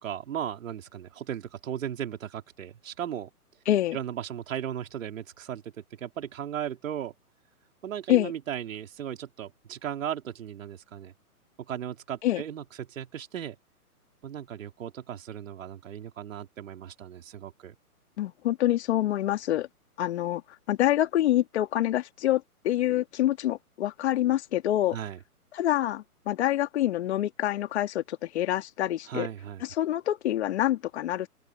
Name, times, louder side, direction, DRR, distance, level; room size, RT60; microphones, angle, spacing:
voice 1, 0.0-3.3 3.9-5.7 6.0-7.1 7.8-11.1 11.6-13.6 14.2-17.8 24.9-25.2 29.1-29.6, right 9 dB, 60° right, 4.0 m, -36 dB
voice 2, 3.7-4.0 8.1-8.3 12.2-12.4 18.2-19.7 20.0-20.4 20.7-25.0 25.5-29.3 29.8-31.3, left 13 dB, 45° left, 2.5 m, -26 dB
open air
hypercardioid pair, 145°, 45 cm